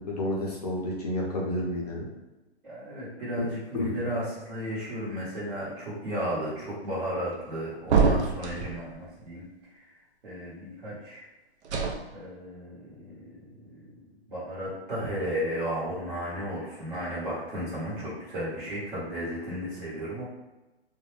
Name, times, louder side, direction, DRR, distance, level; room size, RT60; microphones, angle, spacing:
voice 1, 0.1-2.0 3.7-4.0, left 1 dB, 40° left, -3 dB, 0.5 m, -30 dB
voice 2, 2.6-9.5 9.7-9.9 10.2-11.3 12.1-14.0 14.3-20.3, equal, 50° right, -9 dB, 1.1 m, -34 dB
sound 1, 7.9-8.8 11.6-12.0, right 5 dB, 90° right, 0.5 m, -24 dB
2.4 x 2.1 x 3.1 m, 1.1 s
hypercardioid pair, 170°, 33 cm